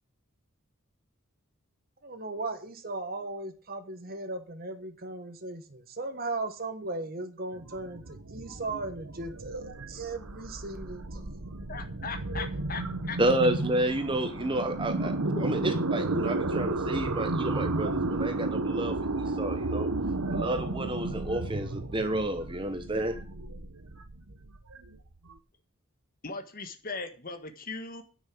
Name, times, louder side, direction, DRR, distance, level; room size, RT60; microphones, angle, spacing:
voice 1, 2.0-11.2, right 2 dB, 45° right, 8 dB, 1.4 m, -37 dB
sound 1, 7.5-25.3, right 2 dB, 80° right, 1.2 m, -33 dB
voice 2, 11.7-13.2 15.4-15.7 26.2-28.0, left 4 dB, 40° left, 8 dB, 1.5 m, -38 dB
voice 3, 13.2-15.1 15.4-19.0 19.4-19.9 20.3-23.2, right 1 dB, 25° right, 8 dB, 0.9 m, -30 dB
9.8 x 6.5 x 8.5 m, 0.37 s
head